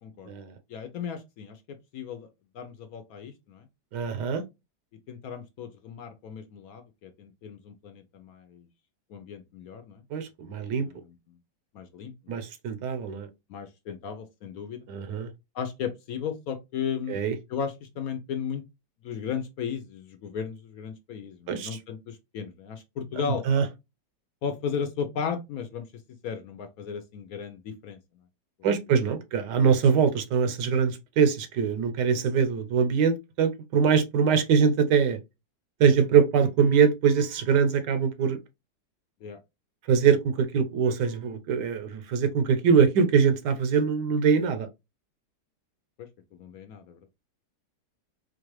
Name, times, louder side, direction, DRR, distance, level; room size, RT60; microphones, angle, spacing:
voice 1, 0.7-2.3 2.5-3.7 5.1-8.7 9.1-10.0 10.7-11.1 11.7-12.4 13.5-14.9 15.5-17.2 17.5-18.6 19.0-23.4 24.4-25.9 26.2-28.0 39.2-39.4 46.3-47.0, left 7 dB, 65° left, 1.0 m, -35 dB
voice 2, 3.9-4.4 10.1-10.9 12.3-13.3 14.9-15.3 17.1-17.3 21.5-21.7 23.5-23.6 28.6-35.2 35.8-38.4 39.9-44.7, right 6 dB, 80° right, 1.4 m, -23 dB
4.4 x 2.4 x 3.1 m
omnidirectional pair, 1.9 m